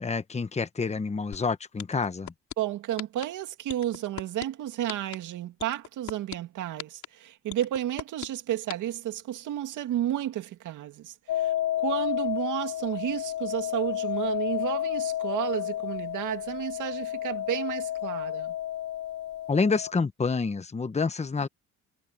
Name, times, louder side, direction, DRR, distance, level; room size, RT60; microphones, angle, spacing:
voice 1, 0.0-2.3 19.5-21.5, left 4 dB, 20° left, 1.1 m, -28 dB
sound 1, 1.3-1.4 1.8-2.5 3.0-3.2 3.7-4.4 4.9-5.2 5.6-6.3 6.8-7.1 7.5-8.3 8.7-8.8, left 10 dB, 65° left, 5.0 m, -36 dB
voice 2, 2.6-18.5, right 12 dB, 80° right, 2.3 m, -32 dB
sound 2, 11.3-19.9, left 12 dB, 80° left, 0.9 m, -31 dB
cardioid pair, 90°, 30 cm